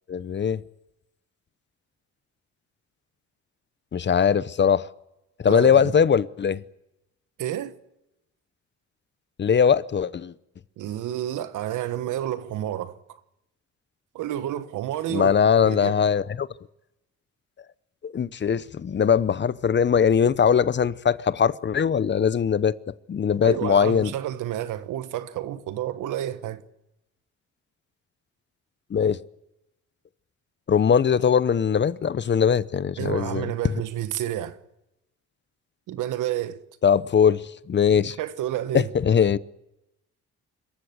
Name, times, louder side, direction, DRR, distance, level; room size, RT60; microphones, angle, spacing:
voice 1, 0.1-0.6 3.9-4.9 5.4-6.6 9.4-10.3 15.1-16.5 18.0-22.7 23.1-24.1 28.9-29.2 30.7-33.5 36.8-38.2 38.7-39.4, left 7 dB, 35° left, 0.8 m, -21 dB
voice 2, 5.4-5.9 7.4-7.8 10.8-13.0 14.1-15.9 23.4-26.6 33.0-34.6 35.9-36.6 38.1-38.9, right 12 dB, 85° right, 1.4 m, -30 dB
26.0 x 15.0 x 9.6 m
cardioid pair, 90°, 30 cm